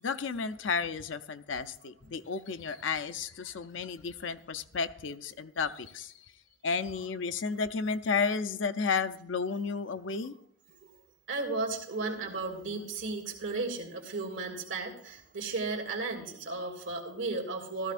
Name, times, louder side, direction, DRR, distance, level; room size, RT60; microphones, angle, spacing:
voice 1, 0.0-6.1 6.6-10.3, left 5 dB, 75° left, 10 dB, 0.5 m, -32 dB
voice 2, 11.3-17.9, right 3 dB, 75° right, 1 dB, 2.5 m, -35 dB
15.5 x 13.5 x 2.5 m, 0.72 s
head